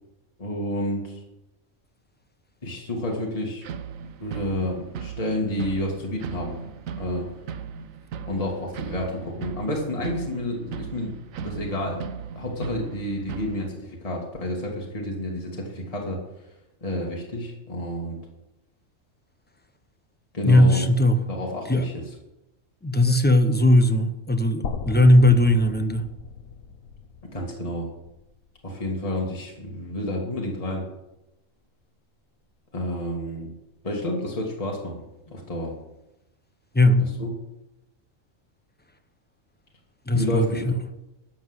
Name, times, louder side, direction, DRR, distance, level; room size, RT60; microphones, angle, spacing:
voice 1, 0.4-1.2 2.6-3.6 4.2-6.6 7.0-7.3 8.3-12.0 12.4-16.2 16.8-18.2 20.3-20.9 21.3-22.0 27.3-27.9 28.6-30.9 32.7-33.5 33.8-35.8 37.0-37.3 40.1-40.7, left 1 dB, 25° left, -1 dB, 2.0 m, -30 dB
sound 1, 3.6-13.7, right 7 dB, 85° right, 1.1 m, -37 dB
voice 2, 20.4-21.2 21.7-21.9 22.8-26.0 36.7-37.1 40.1-40.7, left 1 dB, 10° left, 7 dB, 0.7 m, -18 dB
sound 2, 24.6-28.7, left 6 dB, 90° left, 1.3 m, -37 dB
13.0 x 5.8 x 8.0 m, 0.92 s
omnidirectional pair, 1.4 m